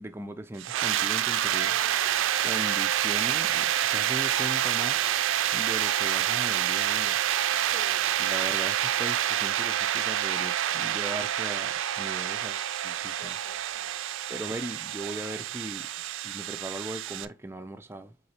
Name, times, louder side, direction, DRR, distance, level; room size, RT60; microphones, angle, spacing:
voice 1, 0.0-1.8 2.4-5.0 5.5-7.2 8.2-13.3 14.3-18.1, right 1 dB, 10° right, 0.3 m, -39 dB
sound 1, 0.6-17.3, right 11 dB, 80° right, 0.4 m, -27 dB
voice 2, 7.5-8.5 13.2-13.9 14.4-14.7, equal, 20° left, 1.1 m, -51 dB
4.2 x 3.9 x 2.8 m
head